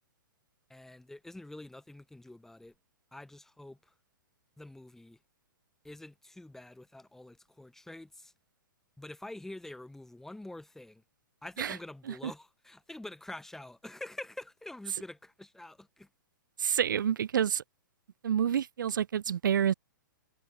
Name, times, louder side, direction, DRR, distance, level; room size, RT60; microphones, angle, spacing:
voice 1, 0.7-2.7 3.1-3.9 4.6-5.2 5.8-8.3 9.0-11.0 11.4-16.1, left 1 dB, 5° left, 2.5 m, -46 dB
voice 2, 16.6-17.6 18.2-19.7, right 9 dB, 65° right, 0.7 m, -28 dB
figure-of-eight pair, 120°, 11 cm